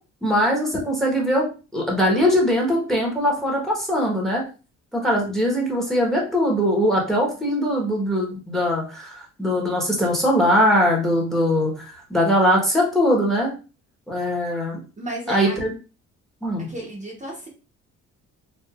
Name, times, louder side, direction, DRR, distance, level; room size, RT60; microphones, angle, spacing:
voice 1, 0.2-1.4 1.7-4.4 4.9-13.5 14.1-14.8 15.3-15.7 16.4-16.7, equal, ahead, -1 dB, 1.1 m, -21 dB
voice 2, 15.0-15.6 16.6-17.5, right 1 dB, 25° right, -3 dB, 1.0 m, -33 dB
4.6 x 2.6 x 2.4 m, 0.33 s
cardioid pair, 120°, 31 cm